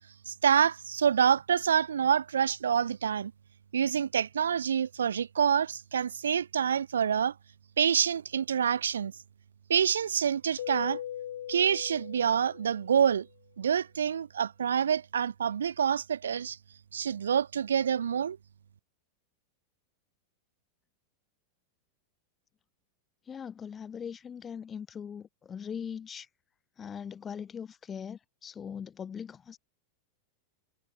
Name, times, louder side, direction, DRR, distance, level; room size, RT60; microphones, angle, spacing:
voice 1, 0.3-3.3 3.7-7.3 7.8-9.1 9.7-11.0 11.5-13.3 13.6-16.6 16.9-18.4, right 8 dB, 65° right, 0.6 m, -27 dB
Keyboard (musical), 10.6-13.1, left 11 dB, 60° left, 1.5 m, -40 dB
voice 2, 23.3-26.3 26.8-29.6, left 7 dB, 20° left, 1.2 m, -40 dB
figure-of-eight pair, 90°, 0 cm